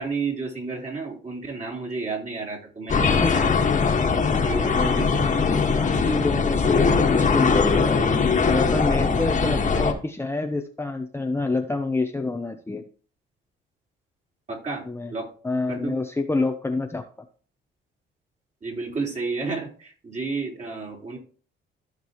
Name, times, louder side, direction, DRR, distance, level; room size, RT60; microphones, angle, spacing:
voice 1, 0.0-3.6 4.4-5.2 14.5-15.3 15.7-15.9 18.6-21.2, right 4 dB, 35° right, -1 dB, 4.1 m, -31 dB
sound 1, 2.9-9.9, left 5 dB, 40° left, 1.7 m, -21 dB
voice 2, 3.1-3.6 4.7-5.1 5.7-8.0 8.4-12.8 14.9-15.1 15.4-17.0, left 3 dB, 10° left, 5 dB, 0.8 m, -27 dB
14.5 x 5.3 x 3.1 m, 0.41 s
cardioid pair, 90°, 20 cm